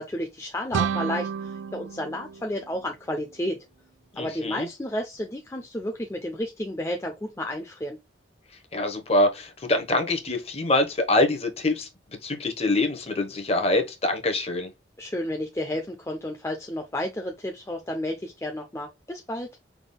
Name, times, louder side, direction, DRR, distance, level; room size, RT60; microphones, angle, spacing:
voice 1, 0.0-3.6 4.2-8.0 15.0-19.5, left 1 dB, 15° left, 0.5 m, -32 dB
sound 1, 0.7-3.5, right 7 dB, 90° right, 0.3 m, -31 dB
voice 2, 4.2-4.7 8.7-14.7, left 2 dB, 35° left, 1.0 m, -25 dB
5.9 x 3.6 x 2.2 m
head